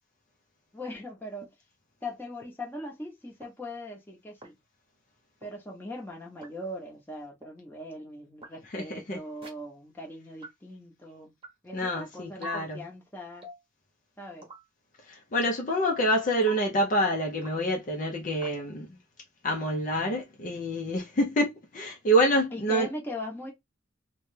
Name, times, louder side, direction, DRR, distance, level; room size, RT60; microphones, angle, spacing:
voice 1, 0.7-1.5 2.0-4.6 5.4-11.3 11.6-13.5 14.2-14.5 22.5-23.5, left 1 dB, 10° left, 1.0 m, -40 dB
sound 1, 1.4-1.5 2.4-2.5 3.4-3.5 4.4-4.5 5.4-5.5 6.4-6.5 7.4-7.5 8.4-8.5 9.4-9.5 10.4-10.5 11.4-11.5 12.4-12.6 13.4-13.7 14.4-14.6 15.4-15.7 16.4-16.6 17.4-17.5 18.4-18.6, right 4 dB, 25° right, 0.9 m, -43 dB
voice 2, 8.7-9.2 11.7-12.8 15.1-18.9 19.4-22.9, equal, 40° left, 0.6 m, -27 dB
3.2 x 2.2 x 3.2 m
head